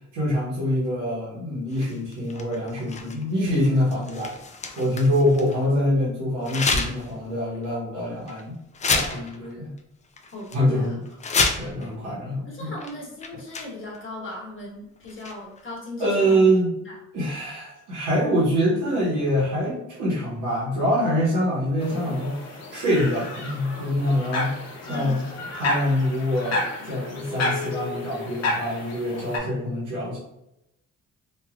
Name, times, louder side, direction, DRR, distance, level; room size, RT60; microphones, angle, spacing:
voice 1, 0.1-4.3 4.8-8.6 8.9-9.7 10.5-11.0 11.6-12.7 16.0-16.7 17.1-24.5 24.9-25.2 25.5-30.2, equal, 85° right, -8 dB, 1.1 m, -25 dB
sound 1, 1.7-5.6 6.4-7.1 7.5-7.7 8.3-8.4 8.7-9.5 9.8-9.9 10.2-10.6 11.1-11.9 12.8-12.9 13.2-14.0 15.0-15.6, left 4 dB, 25° left, 0.4 m, -29 dB
voice 2, 10.3-10.9 12.5-16.4 16.8-17.0 24.9-25.2, left 2 dB, 40° left, -3 dB, 1.2 m, -38 dB
sound 2, 21.8-29.4, left 2 dB, 60° left, 0.8 m, -31 dB
3.1 x 2.4 x 2.4 m, 0.85 s
cardioid pair, 90°, 30 cm